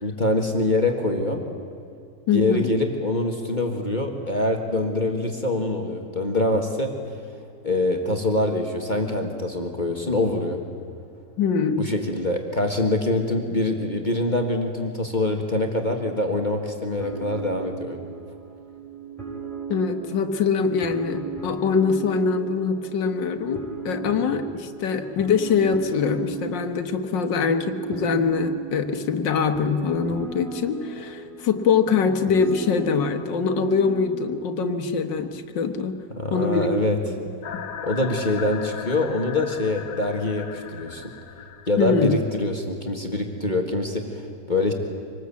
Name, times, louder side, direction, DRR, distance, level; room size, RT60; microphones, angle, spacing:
voice 1, 0.0-1.4 2.3-6.9 7.6-10.6 11.8-18.0 36.2-37.0 37.8-41.1 41.7-44.7, left 2 dB, 25° left, 2 dB, 1.7 m, -24 dB
voice 2, 2.3-2.7 11.4-11.8 19.7-36.0 36.3-36.7 37.1-37.3 41.8-42.2, left 5 dB, 90° left, 7 dB, 1.9 m, -23 dB
sound 1, 17.0-34.4, right 4 dB, ahead, 3.3 m, -37 dB
sound 2, 37.4-42.4, left 8 dB, 70° left, 1.5 m, -37 dB
25.0 x 19.5 x 8.4 m, 2.5 s
omnidirectional pair, 1.9 m